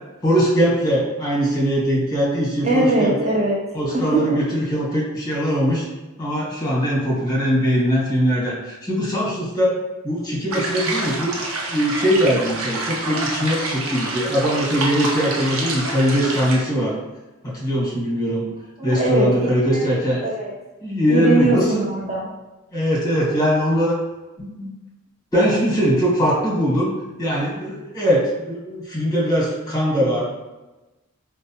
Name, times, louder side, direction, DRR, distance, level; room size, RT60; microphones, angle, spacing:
voice 1, 0.2-3.1 3.7-5.8 6.2-9.8 10.0-11.4 11.7-16.9 17.4-18.4 18.8-20.2 20.8-21.8 22.7-24.0 24.4-24.7 25.3-26.9 27.2-30.3, equal, 15° left, -6 dB, 1.2 m, -21 dB
voice 2, 2.6-3.6 3.9-4.4 18.8-19.9 20.2-20.5 21.1-22.3, right 2 dB, 30° right, -3 dB, 0.6 m, -21 dB
sound 1, 10.5-16.6, right 2 dB, 75° right, 0.7 m, -27 dB
4.5 x 2.1 x 2.8 m, 1.1 s
head